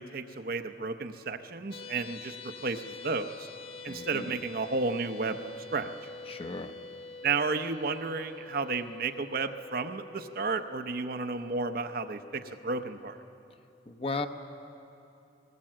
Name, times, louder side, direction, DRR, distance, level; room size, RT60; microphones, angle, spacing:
voice 1, 0.0-3.5 3.8-5.9 7.2-13.2, right 4 dB, 55° right, 8 dB, 0.8 m, -32 dB
sound 1, 1.7-12.9, left 4 dB, 85° left, 1.0 m, -46 dB
voice 2, 3.9-4.3 6.3-6.7 13.9-14.3, left 3 dB, 30° left, 7 dB, 0.9 m, -35 dB
19.0 x 18.5 x 7.5 m, 2.7 s
head